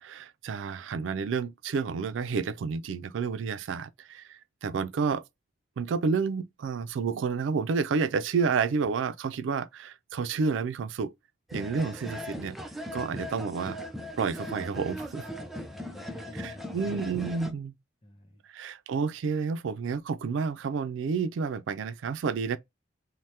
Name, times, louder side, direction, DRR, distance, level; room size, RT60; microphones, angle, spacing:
voice 1, 0.0-5.2 5.8-11.1 11.5-12.6 12.9-13.8 14.2-15.2 16.4-17.7 18.5-22.6, right 5 dB, 90° right, 0.4 m, -30 dB
sound 1, 11.5-17.5, equal, ahead, 0.4 m, -39 dB
voice 2, 15.2-16.9 18.0-18.4, equal, 30° left, 0.8 m, -49 dB
2.8 x 2.1 x 3.2 m
head